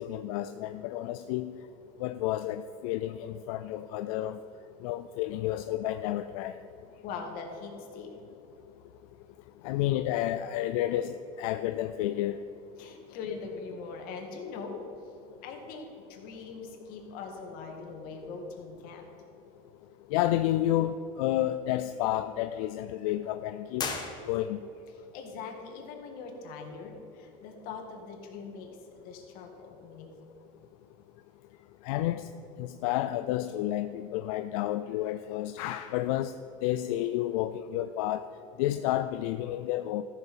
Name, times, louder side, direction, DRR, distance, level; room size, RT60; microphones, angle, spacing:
voice 1, 0.0-1.5 2.0-4.4 4.8-6.5 9.6-12.4 20.1-23.9 24.3-24.6 31.8-32.2 32.6-36.3 36.6-38.2 38.6-40.0, left 13 dB, 85° left, 10 dB, 0.4 m, -30 dB
voice 2, 6.8-8.2 12.8-19.1 24.9-28.7 29.0-30.3, left 4 dB, 60° left, 2 dB, 1.9 m, -42 dB
sound 1, 23.7-24.8, left 4 dB, 25° left, 1.2 m, -36 dB
14.0 x 6.3 x 5.3 m, 2.9 s
supercardioid pair, 135°, 17 cm